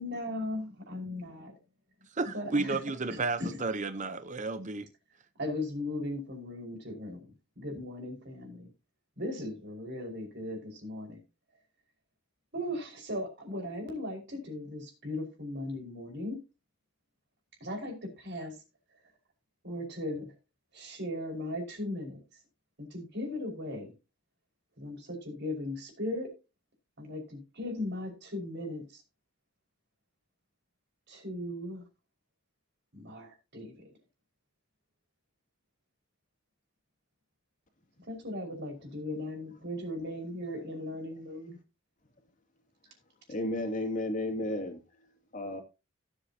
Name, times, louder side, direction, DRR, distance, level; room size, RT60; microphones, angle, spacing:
voice 1, 0.0-1.5 2.3-2.8 3.1-3.6 5.4-7.2 7.6-8.7 9.2-11.2 12.5-16.4 17.6-18.6 19.6-20.3 20.7-22.2 22.8-23.9 24.8-26.3 27.0-29.0 31.1-31.8 32.9-33.9 38.1-41.6, left 1 dB, 55° right, 5.3 m, -37 dB
voice 2, 2.1-4.9, right 3 dB, 35° right, 0.8 m, -32 dB
voice 3, 43.3-44.8 45.3-45.6, left 1 dB, 40° left, 2.7 m, -32 dB
17.0 x 8.2 x 2.8 m
head